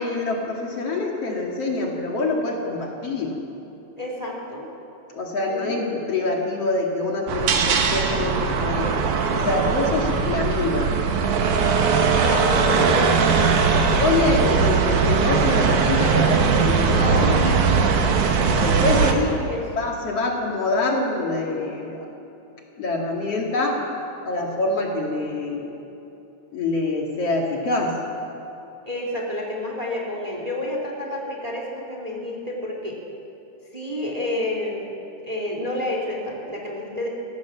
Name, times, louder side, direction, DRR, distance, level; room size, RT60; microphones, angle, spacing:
voice 1, 0.0-3.4 5.1-8.9 9.3-10.9 13.8-17.9 18.6-19.4 19.8-22.1 22.8-23.8 24.3-25.7 26.5-28.0, left 2 dB, 55° left, -1 dB, 3.2 m, -25 dB
voice 2, 4.0-4.7 5.5-5.8 12.2-14.0 19.0-19.6 28.8-33.0 33.7-34.9 35.2-37.1, left 1 dB, 10° right, -1 dB, 3.4 m, -30 dB
sound 1, 7.3-19.1, right 5 dB, 85° right, 3.0 m, -20 dB
24.5 x 17.5 x 7.5 m, 2.9 s
omnidirectional pair, 3.4 m